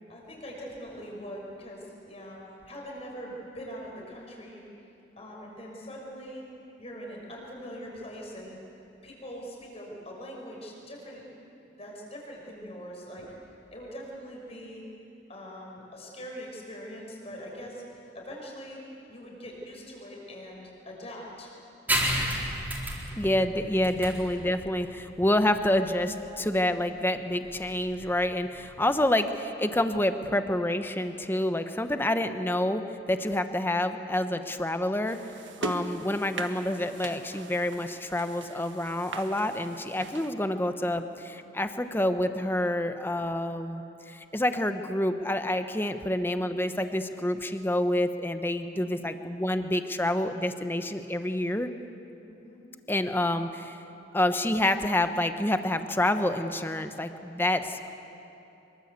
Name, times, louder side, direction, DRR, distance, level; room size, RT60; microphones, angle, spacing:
voice 1, 0.1-2.4 2.7-4.6 5.2-6.5 6.8-8.6 9.0-11.2 11.8-13.3 13.7-14.8 15.3-17.8 18.1-21.5 48.7-49.0 52.3-52.7, equal, 35° left, -1 dB, 6.0 m, -42 dB
sound 1, 21.9-29.0, right 1 dB, 10° right, 4.3 m, -33 dB
voice 2, 23.1-32.8 33.1-35.2 35.6-51.7 52.9-53.8 54.1-57.9, left 1 dB, 10° left, 8 dB, 1.0 m, -28 dB
sound 2, 35.1-40.3, right 3 dB, 85° right, 1.7 m, -40 dB
25.0 x 23.5 x 8.2 m, 2.9 s
head